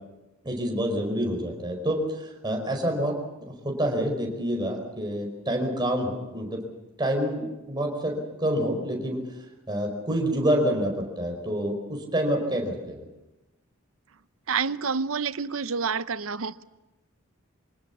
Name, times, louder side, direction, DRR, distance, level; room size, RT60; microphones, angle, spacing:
voice 1, 0.4-3.1 3.4-6.6 7.0-9.2 9.7-13.0, equal, 20° right, 5.0 m, -27 dB
voice 2, 14.5-16.6, right 5 dB, 75° right, 0.8 m, -28 dB
25.5 x 19.0 x 7.3 m
head